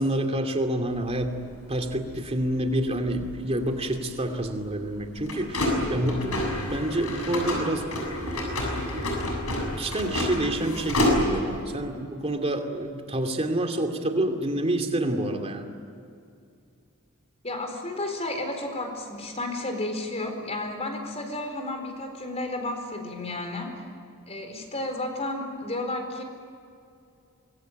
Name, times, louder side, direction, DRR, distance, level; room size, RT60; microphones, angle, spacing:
voice 1, 0.0-1.3 1.7-9.2 9.6-15.7, right 1 dB, 30° right, 5 dB, 2.6 m, -28 dB
sound 1, 0.9-11.6, left 1 dB, 80° left, 7.3 m, -30 dB
voice 2, 17.4-23.8 24.3-26.2, left 2 dB, 30° left, 4 dB, 4.3 m, -32 dB
26.0 x 22.0 x 9.2 m, 2.4 s
head